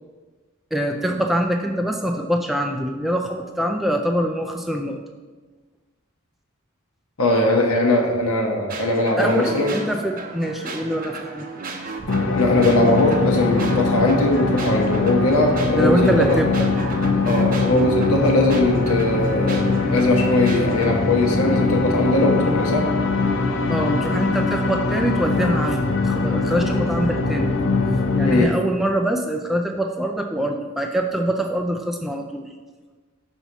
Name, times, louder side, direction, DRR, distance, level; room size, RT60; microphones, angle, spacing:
voice 1, 0.7-5.0 9.2-11.7 15.8-16.7 23.7-27.6 28.1-32.5, equal, ahead, 2 dB, 0.3 m, -24 dB
voice 2, 7.2-9.7 12.3-16.4 17.3-22.9 28.2-28.5, left 2 dB, 75° left, 0 dB, 0.9 m, -20 dB
sound 1, 8.7-20.9, right 3 dB, 40° right, 0.6 m, -35 dB
sound 2, 12.1-28.4, left 3 dB, 60° left, 0.6 m, -22 dB
6.0 x 5.5 x 4.1 m, 1.3 s
head